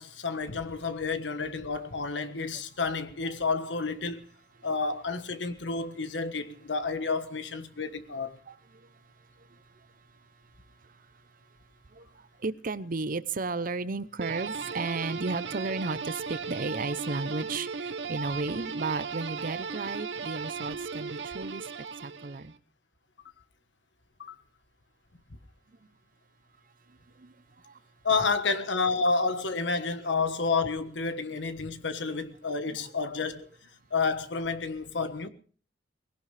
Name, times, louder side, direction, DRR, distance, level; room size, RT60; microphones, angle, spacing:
voice 1, 0.0-4.2 4.6-8.4 24.2-24.3 28.0-33.5 33.9-35.3, left 4 dB, 85° left, 1.4 m, -30 dB
voice 2, 8.5-8.9 9.4-9.6 11.9-21.7 22.0-22.5 27.2-27.3 27.6-27.8 32.6-32.8, right 3 dB, 50° right, 0.8 m, -34 dB
sound 1, 14.2-22.5, right 5 dB, 85° right, 1.0 m, -36 dB
20.5 x 17.0 x 3.4 m
head